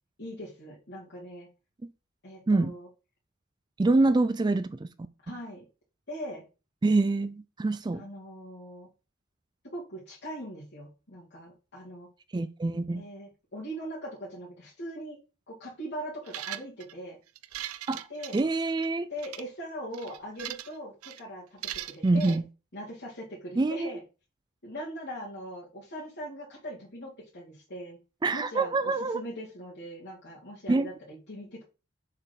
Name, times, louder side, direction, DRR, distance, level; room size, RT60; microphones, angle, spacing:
voice 1, 0.2-1.5 2.2-2.9 5.2-5.7 6.1-6.4 7.9-8.9 9.6-12.1 12.9-15.2 15.5-17.2 18.1-18.4 19.1-22.4 22.7-24.0 24.6-28.0 28.3-31.7, equal, 55° left, 2.4 m, -41 dB
voice 2, 3.8-4.9 6.8-8.0 12.3-13.0 17.9-18.0 18.3-19.1 22.0-22.4 23.6-23.9 28.2-29.2 30.7-30.9, right 3 dB, 20° right, 0.3 m, -25 dB
sound 1, 16.3-16.9 17.4-18.9 19.2-19.4 19.9-20.8 21.0-21.2 21.6-22.4, right 12 dB, 85° right, 0.6 m, -39 dB
7.1 x 4.5 x 5.2 m
head